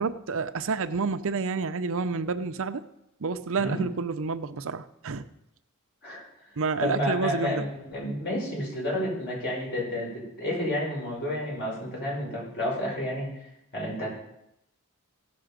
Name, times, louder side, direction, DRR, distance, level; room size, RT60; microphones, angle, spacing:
voice 1, 0.0-2.8 3.2-5.2 6.6-7.6, right 4 dB, 65° right, 11 dB, 0.6 m, -29 dB
voice 2, 6.8-13.5 13.7-14.2, left 1 dB, 50° left, -4 dB, 5.6 m, -30 dB
16.5 x 6.8 x 5.1 m, 0.83 s
head